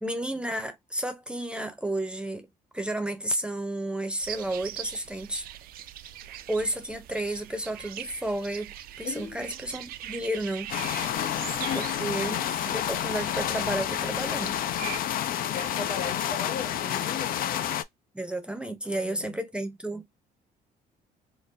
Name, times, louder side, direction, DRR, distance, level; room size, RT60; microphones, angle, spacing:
voice 1, 0.0-2.5 2.7-5.4 6.5-10.7 11.7-14.6 18.1-20.1, right 1 dB, 5° right, 0.6 m, -32 dB
sound 1, 4.2-15.0, right 12 dB, 60° right, 0.4 m, -42 dB
voice 2, 9.0-9.6 11.1-12.1 15.4-17.6 18.8-19.4, left 6 dB, 85° left, 1.9 m, -38 dB
sound 2, 10.7-17.8, left 11 dB, 60° left, 0.4 m, -29 dB
3.7 x 2.2 x 2.5 m
cardioid pair, 110°, 17 cm